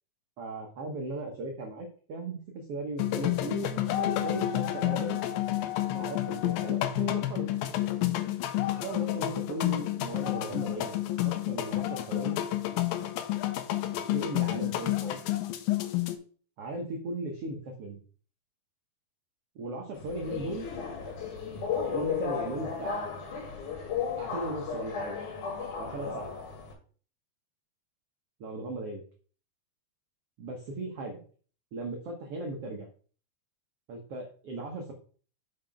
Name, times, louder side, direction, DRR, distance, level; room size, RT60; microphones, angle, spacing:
voice 1, 0.4-5.2 5.9-7.5 8.8-11.0 11.2-12.4 14.1-15.4 16.6-18.0 19.5-20.7 21.9-23.2 24.2-25.2 25.8-26.3 28.4-29.0 30.4-31.2 31.7-32.9 33.9-34.9, right 2 dB, 70° right, 2 dB, 1.4 m, -37 dB
sound 1, 3.0-16.2, left 14 dB, 80° left, 2.4 m, -30 dB
Subway metro underground, 19.9-26.7, left 6 dB, 65° left, 2.7 m, -34 dB
5.8 x 5.1 x 5.0 m, 0.43 s
omnidirectional pair, 4.1 m